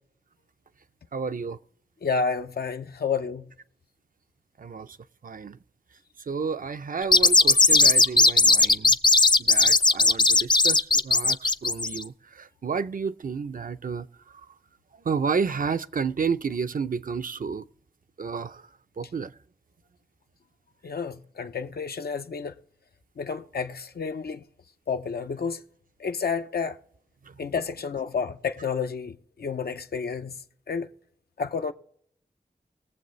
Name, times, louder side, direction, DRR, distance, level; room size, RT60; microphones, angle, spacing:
voice 1, 1.1-1.6 4.6-5.0 5.2-5.6 6.2-9.0 9.4-14.5 14.9-17.7 18.2-19.3 27.2-27.4, right 5 dB, 65° right, 0.5 m, -31 dB
voice 2, 2.0-3.5 20.8-22.5 23.2-24.4 24.9-25.6 26.0-26.8 27.4-30.4 30.7-30.9 31.4-31.7, left 5 dB, 85° left, 0.5 m, -30 dB
sound 1, 7.0-12.0, left 3 dB, 30° left, 0.4 m, -18 dB
21.0 x 7.3 x 3.1 m
wide cardioid pair, 75°, 16 cm